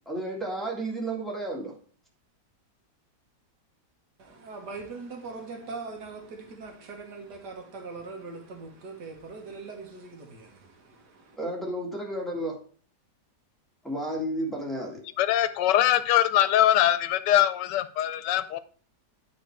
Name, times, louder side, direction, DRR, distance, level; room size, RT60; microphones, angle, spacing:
voice 1, 0.1-1.7 11.4-12.6 13.8-15.0, right 1 dB, ahead, 1.7 m, -32 dB
voice 2, 4.2-11.4, right 4 dB, 75° right, 1.9 m, -41 dB
voice 3, 15.2-18.6, left 12 dB, 85° left, 1.2 m, -22 dB
8.9 x 3.9 x 4.5 m
omnidirectional pair, 1.8 m